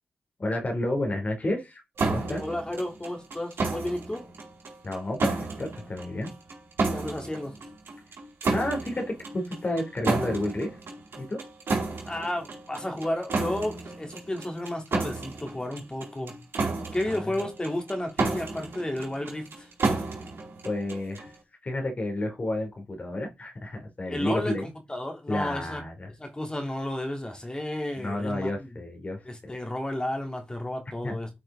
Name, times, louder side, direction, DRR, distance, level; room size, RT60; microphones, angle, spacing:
voice 1, 0.4-1.8 2.1-2.4 4.8-6.3 8.5-10.7 11.1-11.4 17.1-17.3 20.6-21.3 21.6-24.7 25.3-26.1 28.0-29.2 31.0-31.2, left 1 dB, 40° left, 3.0 m, -30 dB
sound 1, 2.0-21.3, right 3 dB, 75° right, 4.6 m, -32 dB
voice 2, 2.4-4.3 6.9-7.5 12.1-16.3 16.9-19.7 24.1-25.8 26.2-28.5 29.2-31.3, left 1 dB, 20° left, 3.0 m, -32 dB
11.5 x 6.1 x 3.8 m
cardioid pair, 65°, 4 cm